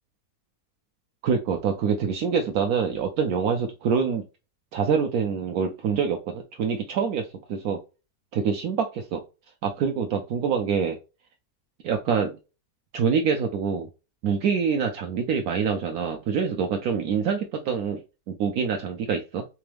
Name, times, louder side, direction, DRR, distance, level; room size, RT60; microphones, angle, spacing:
voice 1, 1.2-4.2 4.7-7.8 8.3-9.2 9.6-11.0 11.8-12.4 12.9-13.9 14.2-18.0 18.3-19.4, right 6 dB, 70° right, 3 dB, 1.1 m, -25 dB
3.5 x 3.2 x 3.3 m, 0.30 s
omnidirectional pair, 1.7 m